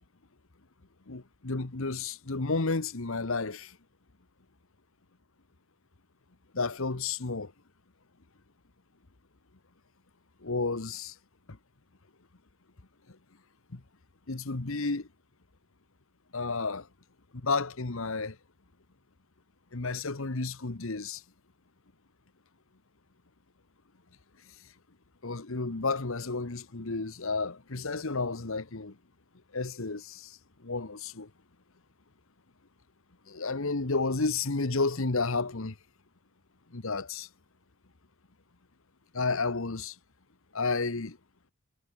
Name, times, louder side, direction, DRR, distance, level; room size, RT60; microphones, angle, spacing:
voice 1, 1.1-3.8 6.5-7.5 10.4-11.1 13.7-13.8 14.3-15.1 16.3-16.9 17.3-18.4 19.7-21.2 25.2-29.0 29.5-31.3 33.3-35.8 36.7-37.3 39.1-40.0 40.5-41.2, left 3 dB, 65° left, 1.2 m, -31 dB
head